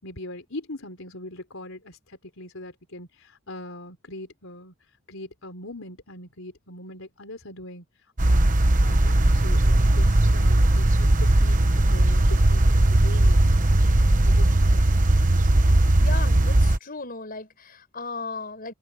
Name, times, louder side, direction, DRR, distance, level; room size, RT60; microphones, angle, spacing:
voice 1, 0.0-4.7 5.1-7.8 8.2-8.5 8.8-11.6 11.9-13.5 14.2-15.0, left 1 dB, 70° left, 4.3 m, -41 dB
sound 1, 8.2-16.8, right 1 dB, 40° right, 1.1 m, -18 dB
voice 2, 16.0-18.7, left 3 dB, 45° left, 5.7 m, -36 dB
open air
head